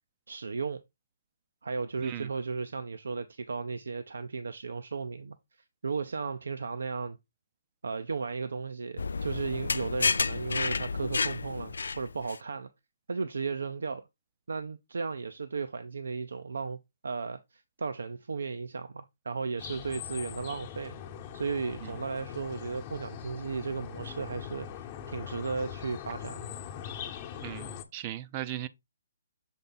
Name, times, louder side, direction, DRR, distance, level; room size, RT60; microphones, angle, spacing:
voice 1, 0.3-0.8 1.6-5.4 5.8-7.2 7.8-12.7 13.1-14.0 14.5-16.8 17.0-21.0 21.3-26.5, right 4 dB, 80° right, 0.5 m, -35 dB
sound 1, 9.0-12.4, left 4 dB, 80° left, 0.4 m, -31 dB
sound 2, 19.6-27.8, left 9 dB, 30° left, 0.9 m, -41 dB
voice 2, 27.4-28.7, right 12 dB, 30° right, 0.5 m, -37 dB
7.0 x 3.3 x 4.0 m
hypercardioid pair, 145°, 0 cm